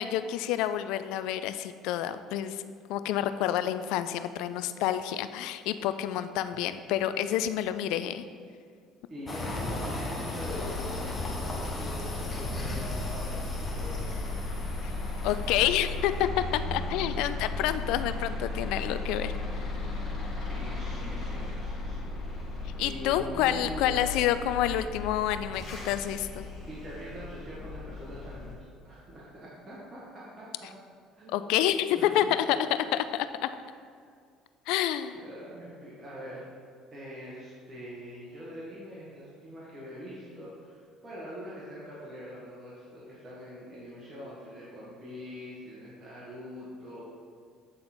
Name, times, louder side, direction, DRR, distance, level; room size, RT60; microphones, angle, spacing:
voice 1, 0.0-2.6 2.9-8.2 14.8-14.9 15.2-19.6 22.8-26.5 31.3-33.5 34.7-35.2, left 11 dB, 80° left, 12 dB, 0.3 m, -28 dB
voice 2, 9.1-14.2 20.4-22.1 22.8-24.0 26.7-30.5 31.2-31.4 31.9-32.3 35.1-36.4 36.9-47.0, equal, 30° right, -7 dB, 1.6 m, -43 dB
sound 1, 9.3-16.2, left 2 dB, 25° left, 1.1 m, -36 dB
sound 2, 10.4-28.5, left 3 dB, 40° left, 1.7 m, -36 dB
8.5 x 3.9 x 4.3 m, 2.1 s
supercardioid pair, 95°, 0 cm